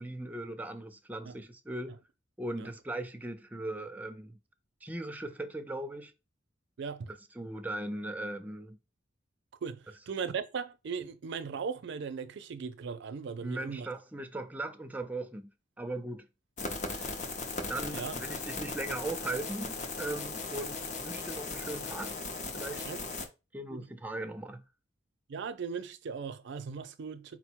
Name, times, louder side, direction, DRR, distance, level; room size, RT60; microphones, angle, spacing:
voice 1, 0.0-1.9 2.4-4.4 4.8-6.1 7.1-8.8 13.3-15.5 15.8-16.3 17.7-22.1 22.5-22.9 23.5-24.6, right 1 dB, 10° right, 0.4 m, -39 dB
voice 2, 6.8-7.1 9.6-13.9 16.9-17.1 17.9-18.2 22.8-23.0 23.7-23.9 25.3-27.4, right 6 dB, 65° right, 0.4 m, -38 dB
sound 1, 16.6-23.2, left 3 dB, 40° left, 0.6 m, -38 dB
4.2 x 2.1 x 4.4 m
head